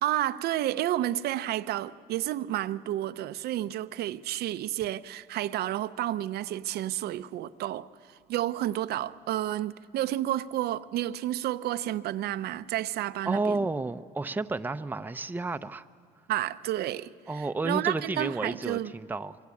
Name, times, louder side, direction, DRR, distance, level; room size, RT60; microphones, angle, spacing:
voice 1, 0.0-13.6 16.3-18.9, right 13 dB, 70° right, 0.7 m, -31 dB
voice 2, 13.3-15.9 17.3-19.4, right 3 dB, 10° right, 0.6 m, -31 dB
26.5 x 23.0 x 8.4 m
cardioid pair, 110°, 17 cm